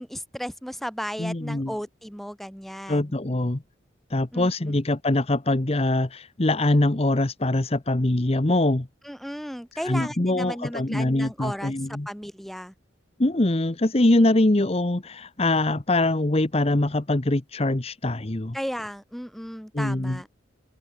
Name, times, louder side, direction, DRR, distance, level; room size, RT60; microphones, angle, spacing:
voice 1, 0.0-3.1 4.3-4.8 9.0-12.7 18.5-20.3, equal, ahead, 4.5 m, -35 dB
voice 2, 1.2-1.7 2.9-3.6 4.1-8.9 9.7-12.1 13.2-18.6 19.7-20.2, left 2 dB, 30° left, 1.0 m, -23 dB
open air
head